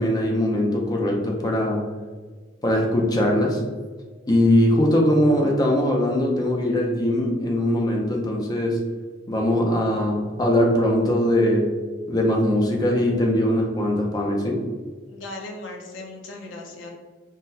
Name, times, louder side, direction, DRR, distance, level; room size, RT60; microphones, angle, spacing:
voice 1, 0.0-1.8 2.6-3.6 4.3-8.8 9.3-11.7 12.1-14.7, left 1 dB, 20° left, 0 dB, 0.4 m, -21 dB
voice 2, 15.1-16.9, left 2 dB, 65° left, 1 dB, 0.6 m, -37 dB
3.8 x 2.1 x 2.7 m, 1.4 s
head